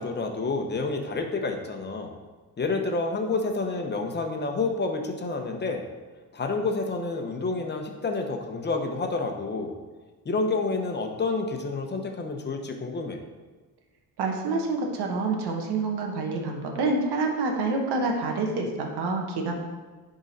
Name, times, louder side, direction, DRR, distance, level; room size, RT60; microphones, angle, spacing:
voice 1, 0.0-2.2 2.6-5.9 6.3-9.7 10.2-13.2, left 3 dB, 25° left, 3 dB, 0.9 m, -29 dB
voice 2, 14.2-19.5, right 3 dB, 85° right, 2 dB, 1.3 m, -27 dB
10.5 x 3.9 x 4.2 m, 1.3 s
cardioid pair, 125°, 39 cm